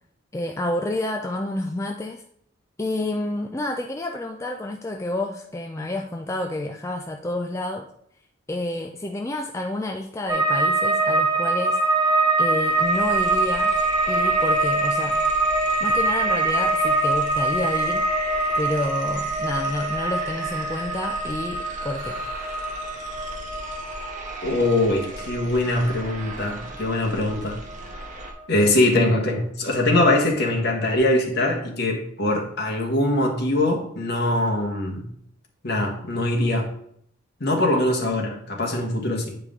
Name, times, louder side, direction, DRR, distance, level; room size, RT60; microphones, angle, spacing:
voice 1, 0.3-2.2 2.8-7.9 8.5-11.8 12.4-13.8 14.1-15.2 15.8-18.1 18.6-22.2, left 1 dB, 15° left, 3 dB, 0.3 m, -29 dB
sound 1, 10.3-27.4 27.7-28.4, right 2 dB, 20° right, 1.1 m, -24 dB
sound 2, 11.3-11.4 11.6-28.3, right 2 dB, 40° right, 1.1 m, -38 dB
voice 2, 24.4-27.6 28.5-35.1 35.6-36.7 37.4-39.4, left 1 dB, 50° left, 0 dB, 1.5 m, -22 dB
9.2 x 4.8 x 3.7 m, 0.68 s
head